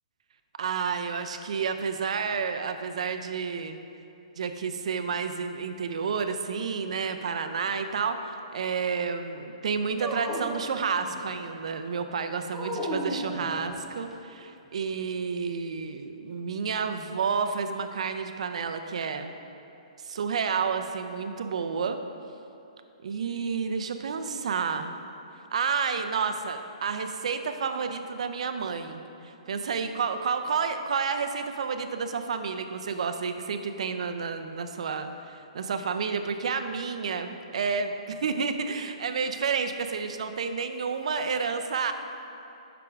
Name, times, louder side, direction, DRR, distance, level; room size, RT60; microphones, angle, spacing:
voice 1, 0.6-3.8 4.4-19.3 20.0-22.0 23.0-24.9 25.5-41.9, right 5 dB, 65° right, 8 dB, 0.5 m, -30 dB
Dog, 10.0-11.4 12.5-14.1, equal, ahead, 0.6 m, -34 dB
8.2 x 6.0 x 3.5 m, 2.7 s
hypercardioid pair, 170°, 4 cm